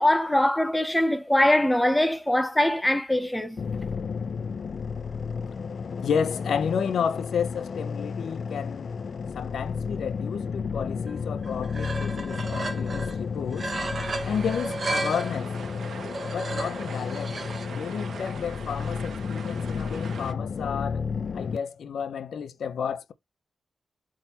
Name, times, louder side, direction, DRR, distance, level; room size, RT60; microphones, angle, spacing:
voice 1, 0.0-3.6, left 1 dB, 5° left, 0.7 m, -22 dB
sound 1, 3.6-21.6, left 5 dB, 50° left, 0.4 m, -32 dB
voice 2, 6.0-8.9 9.3-13.7 14.2-15.5 16.3-17.4 17.7-21.1 21.3-23.1, left 7 dB, 80° left, 0.7 m, -31 dB
Scraping Metal, 11.1-11.2 11.4-13.2 13.5-15.3 16.0-17.7, right 2 dB, 35° right, 1.1 m, -33 dB
sound 2, 14.0-20.3, right 6 dB, 65° right, 1.1 m, -42 dB
8.4 x 3.8 x 2.9 m
wide cardioid pair, 160°, 0 cm